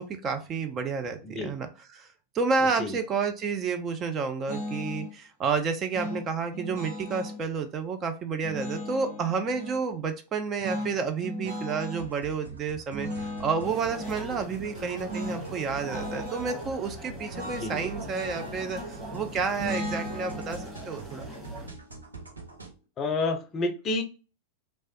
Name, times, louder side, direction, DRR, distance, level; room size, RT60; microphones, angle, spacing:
voice 1, 0.0-2.1 2.3-21.3, right 5 dB, 30° right, 7 dB, 0.4 m, -30 dB
sound 1, 4.5-5.1 5.9-7.4 8.4-9.8 10.6-12.1 12.9-14.3 15.1-15.4 15.7-16.5 17.3-19.1 19.6-22.7, left 1 dB, 60° right, 1.6 m, -37 dB
sound 2, 12.0-22.7, right 4 dB, 80° right, 0.6 m, -44 dB
sound 3, 13.6-21.7, right 1 dB, 10° right, 1.6 m, -41 dB
voice 2, 17.4-17.9 23.0-24.0, left 2 dB, 30° left, 7 dB, 0.5 m, -29 dB
3.0 x 2.2 x 2.8 m, 0.34 s
figure-of-eight pair, 90°, 0 cm